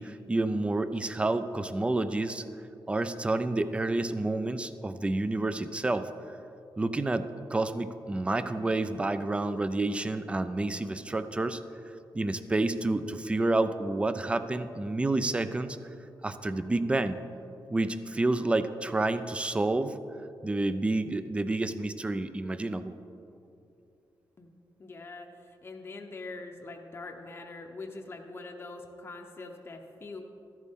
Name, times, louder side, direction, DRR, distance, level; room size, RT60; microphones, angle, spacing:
voice 1, 0.0-2.4 2.9-6.1 6.8-11.6 12.1-15.8 16.2-17.2 17.7-20.0 20.4-23.0, right 2 dB, 15° right, 11 dB, 0.4 m, -29 dB
voice 2, 24.8-30.2, left 3 dB, 30° left, 2 dB, 0.7 m, -43 dB
13.5 x 10.5 x 3.6 m, 2.7 s
wide cardioid pair, 175°, 8 cm